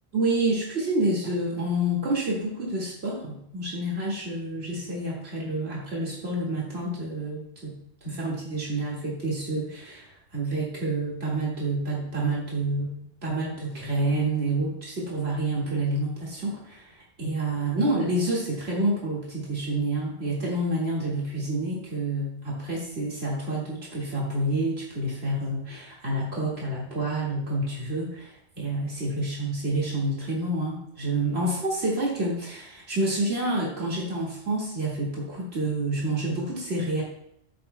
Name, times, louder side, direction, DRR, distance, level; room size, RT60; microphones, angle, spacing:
voice 1, 0.1-37.0, right 2 dB, 75° right, -5 dB, 2.3 m, -28 dB
12.0 x 7.9 x 2.2 m, 0.72 s
omnidirectional pair, 1.1 m